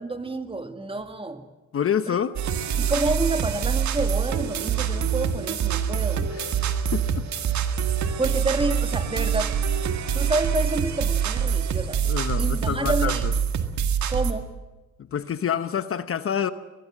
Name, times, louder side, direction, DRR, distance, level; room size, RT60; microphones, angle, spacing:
voice 1, 0.0-1.5 2.1-2.2 2.8-6.3 8.2-9.6 10.1-12.0 12.4-13.2 14.1-14.5, right 2 dB, 20° right, 8 dB, 2.1 m, -28 dB
voice 2, 1.7-2.3 6.3-6.6 6.9-7.3 12.0-13.3 15.0-16.5, left 8 dB, 45° left, 12 dB, 1.0 m, -27 dB
sound 1, 2.4-14.3, right 7 dB, 65° right, 2.0 m, -25 dB
24.0 x 18.5 x 7.6 m, 1.2 s
cardioid pair, 90°, 30 cm